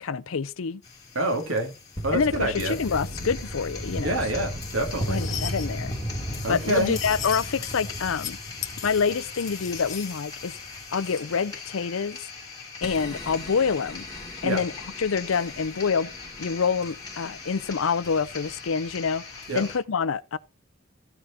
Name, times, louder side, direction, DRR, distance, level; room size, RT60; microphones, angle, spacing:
voice 1, 0.0-0.8 2.1-4.2 5.1-5.9 6.5-8.4 8.8-10.5 10.9-12.3 12.8-14.1 14.4-14.7 15.0-16.1 16.4-19.2 19.5-20.4, left 5 dB, 80° left, 0.5 m, -27 dB
sound 1, 0.8-19.8, left 1 dB, 20° left, 2.3 m, -36 dB
voice 2, 1.1-1.7 2.0-2.8 4.0-5.2 6.4-7.0 14.4-14.6 19.5-19.6, right 1 dB, 75° right, 2.5 m, -27 dB
sound 2, 4.6-5.7 6.4-7.5 8.0-8.3 8.6-11.2, left 10 dB, 35° left, 1.1 m, -39 dB
14.5 x 5.0 x 4.2 m
head